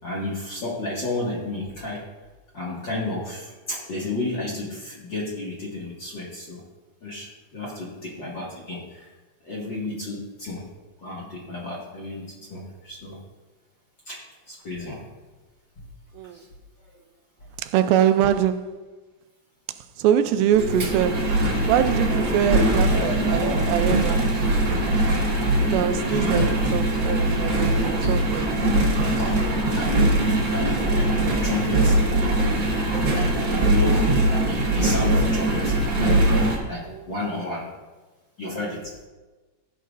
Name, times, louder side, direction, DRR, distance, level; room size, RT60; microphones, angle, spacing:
voice 1, 0.0-2.0 2.5-6.6 7.0-7.3 7.5-9.0 9.4-10.6 11.0-13.2 14.1-14.2 14.5-15.0 16.3-16.4 23.4-23.5 26.1-26.4 29.2-29.5 29.8-31.9 33.1-36.3 36.6-37.7 38.4-38.9, left 2 dB, 40° left, 1.7 m, -32 dB
voice 2, 17.6-18.7 20.0-21.3 21.7-24.3 25.7-28.6 36.9-37.3, right 10 dB, 85° right, 2.3 m, -24 dB
Engine, 20.5-36.6, right 1 dB, 40° right, 2.0 m, -21 dB
16.0 x 9.3 x 2.5 m
omnidirectional pair, 4.3 m